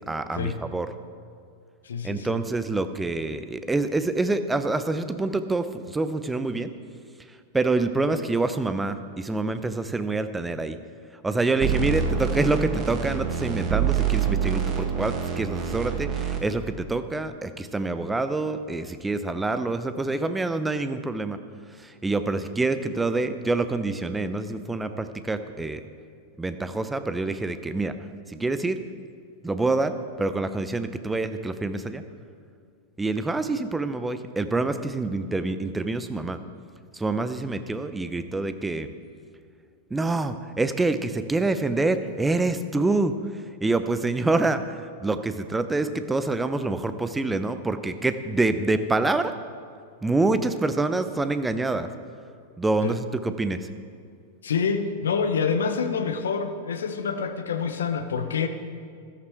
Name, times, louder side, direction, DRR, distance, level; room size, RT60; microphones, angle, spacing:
voice 1, 0.1-0.9 2.0-6.7 7.3-10.8 11.2-21.4 21.7-25.8 26.4-28.0 28.3-28.8 29.4-32.0 33.0-36.4 36.9-38.9 39.9-49.3 50.0-51.9 52.6-53.7, right 3 dB, 10° right, 10 dB, 0.8 m, -26 dB
voice 2, 1.8-2.4 52.8-53.0 54.4-58.5, left 6 dB, 70° left, 8 dB, 1.0 m, -27 dB
sound 1, 11.6-16.4, right 7 dB, 35° right, 1.9 m, -26 dB
14.5 x 13.0 x 4.6 m, 2.3 s
figure-of-eight pair, 90°, 0 cm